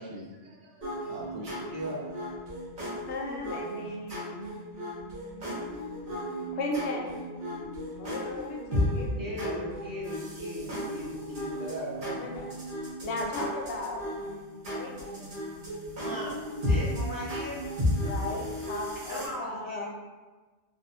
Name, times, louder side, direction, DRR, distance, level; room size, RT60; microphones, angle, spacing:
voice 1, 0.0-1.7 2.3-2.5 3.0-4.0, right 1 dB, 80° right, -3 dB, 1.0 m, -46 dB
sound 1, 0.8-19.3, left 1 dB, 50° right, 1.2 m, -34 dB
voice 2, 3.1-4.5 6.5-7.2 8.0-9.7 12.0-12.4 13.0-14.1 14.6-15.3 18.0-19.9, left 2 dB, 75° left, 0 dB, 0.8 m, -36 dB
voice 3, 9.2-12.2 16.0-16.4 16.6-17.6 18.2-18.3 19.1-19.9, right 1 dB, 20° right, -8 dB, 0.7 m, -38 dB
3.5 x 2.3 x 2.6 m, 1.3 s
omnidirectional pair, 1.2 m